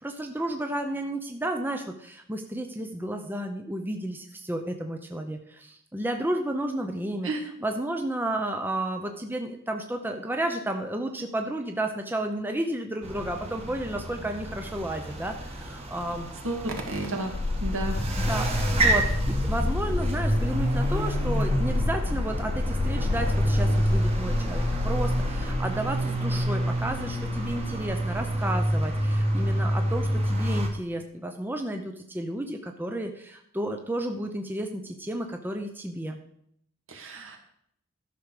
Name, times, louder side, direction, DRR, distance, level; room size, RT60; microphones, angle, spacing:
voice 1, 0.0-7.3 7.6-16.3 18.2-36.2, right 1 dB, 10° right, 4 dB, 0.7 m, -32 dB
sound 1, 13.0-30.7, right 1 dB, 30° right, 1.6 m, -28 dB
voice 2, 16.4-17.3 17.6-18.0 36.9-37.4, right 2 dB, 65° right, 2 dB, 2.1 m, -31 dB
sound 2, 17.3-25.6, left 3 dB, 25° left, 0.3 m, -29 dB
12.5 x 6.4 x 4.9 m, 0.72 s
head